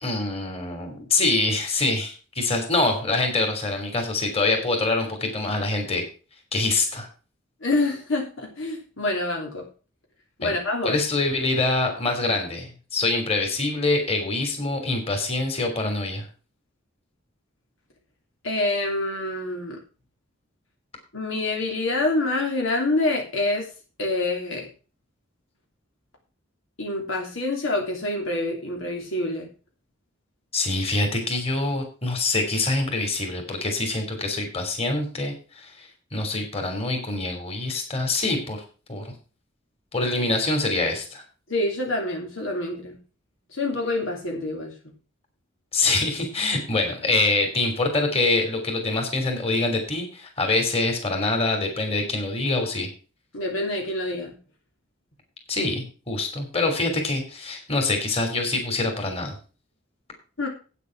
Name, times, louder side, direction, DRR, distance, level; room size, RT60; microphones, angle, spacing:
voice 1, 0.0-6.0 6.5-7.1 10.4-10.5 10.8-16.3 30.5-38.6 38.9-39.1 39.9-41.2 45.7-52.9 55.5-59.3, left 2 dB, 30° left, 3 dB, 3.1 m, -25 dB
voice 2, 7.6-9.7 10.4-11.0 18.4-19.8 21.1-23.7 24.0-24.7 26.8-29.5 41.5-43.0 43.5-44.7 53.3-54.4 60.4-60.5, left 2 dB, 90° left, 0 dB, 3.0 m, -26 dB
8.9 x 8.3 x 5.9 m, 0.36 s
head